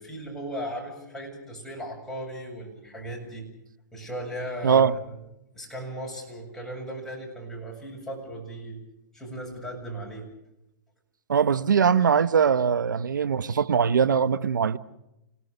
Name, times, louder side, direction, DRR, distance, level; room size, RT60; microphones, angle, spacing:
voice 1, 0.0-3.5 3.9-5.2 5.5-8.8 9.1-10.3, right 1 dB, 5° left, 7.5 m, -37 dB
voice 2, 11.3-14.8, right 7 dB, 90° right, 1.0 m, -21 dB
28.5 x 18.0 x 6.8 m
hypercardioid pair, 135°, 10 cm